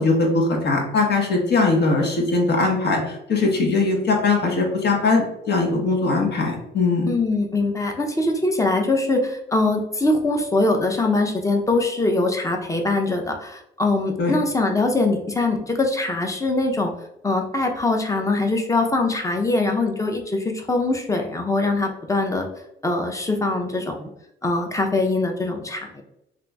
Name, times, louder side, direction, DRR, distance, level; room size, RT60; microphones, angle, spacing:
voice 1, 0.0-7.1 14.2-14.3, left 3 dB, 55° left, 1 dB, 0.9 m, -20 dB
voice 2, 7.1-16.9 17.2-22.5 22.8-24.1 24.4-26.0, left 2 dB, 15° left, 3 dB, 0.6 m, -22 dB
2.9 x 2.5 x 3.4 m, 0.83 s
cardioid pair, 90°, 20 cm